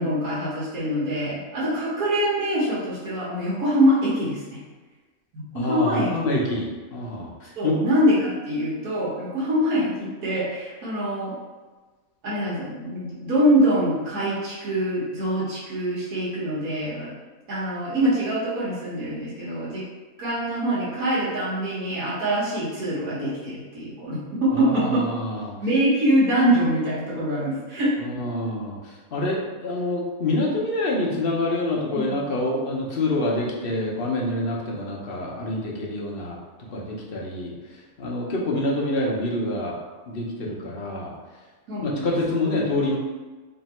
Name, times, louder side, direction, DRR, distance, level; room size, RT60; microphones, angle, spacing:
voice 1, 0.0-4.4 5.3-6.1 7.6-11.3 12.2-17.1 17.5-19.8 20.2-25.1 25.6-27.9 31.9-32.3 41.7-42.1, equal, 85° right, -9 dB, 1.6 m, -24 dB
voice 2, 5.5-7.8 24.5-25.6 28.0-36.4 36.7-39.8 40.1-41.1 41.8-43.0, left 2 dB, 50° left, -2 dB, 0.8 m, -27 dB
3.3 x 2.7 x 4.2 m, 1.3 s
omnidirectional pair, 1.5 m